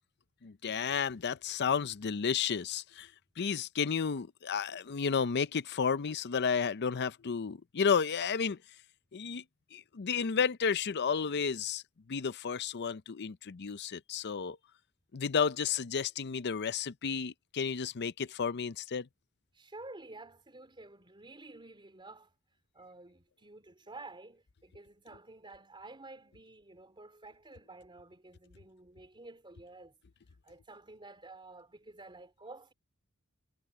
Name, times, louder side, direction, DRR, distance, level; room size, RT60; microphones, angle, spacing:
voice 1, 0.4-3.1 3.4-8.6 9.1-9.4 9.7-11.8 12.1-14.6 15.1-19.1, left 6 dB, 50° left, 0.6 m, -32 dB
voice 2, 19.5-22.3 22.7-29.9 30.4-32.7, right 2 dB, 25° right, 3.7 m, -51 dB
head